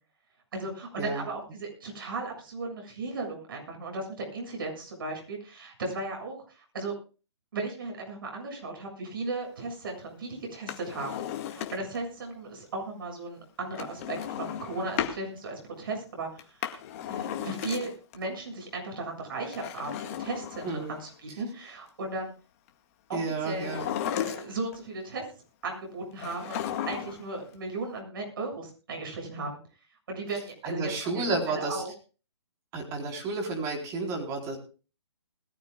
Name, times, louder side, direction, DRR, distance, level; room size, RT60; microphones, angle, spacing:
voice 1, 0.5-6.9 7.5-11.2 11.5-16.5 17.1-22.3 23.1-23.8 24.2-25.2 25.6-29.6 30.1-31.9, right 3 dB, 50° right, 1 dB, 7.4 m, -36 dB
Drawer open or close, 10.5-12.1 13.7-15.2 16.4-18.2 19.4-21.1 23.5-24.8 26.2-27.3 27.6-27.7, left 10 dB, 30° left, 1.9 m, -35 dB
voice 2, 20.6-21.0 23.1-23.9 30.6-31.8 32.7-34.6, right 3 dB, 20° right, 1 dB, 4.2 m, -31 dB
21.0 x 14.5 x 2.4 m, 0.36 s
figure-of-eight pair, 135°, 14 cm